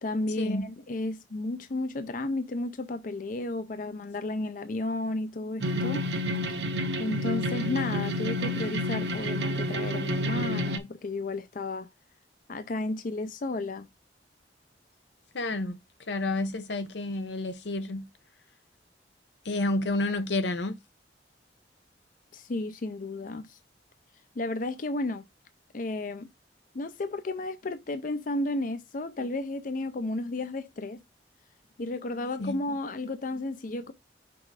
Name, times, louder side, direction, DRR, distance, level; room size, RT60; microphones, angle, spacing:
voice 1, 0.0-6.0 6.5-6.6 7.0-11.9 12.5-13.9 22.3-23.6 24.4-25.3 25.7-26.3 26.7-31.0 31.8-33.9, left 2 dB, 50° left, 0.5 m, -33 dB
sound 1, 5.6-10.8, equal, 75° right, 1.0 m, -29 dB
voice 2, 15.3-15.8 16.1-18.1 19.4-20.8 32.4-32.6, left 2 dB, 80° left, 0.8 m, -30 dB
6.1 x 3.5 x 4.8 m
head